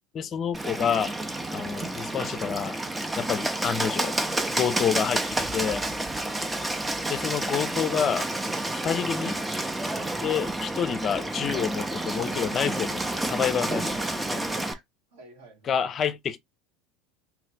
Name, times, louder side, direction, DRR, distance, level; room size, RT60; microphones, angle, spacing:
voice 1, 0.1-1.1 1.5-2.8 3.2-4.2 4.4-5.8 7.1-8.3 8.7-9.4 10.2-13.9 14.3-14.4 15.7-16.4, left 8 dB, 40° left, 0.5 m, -28 dB
Bird, 0.5-14.7, right 1 dB, 10° right, 0.6 m, -30 dB
voice 2, 13.7-14.8 15.1-15.9, right 3 dB, 80° right, 1.8 m, -49 dB
3.0 x 2.6 x 3.4 m
hypercardioid pair, 80°, 0 cm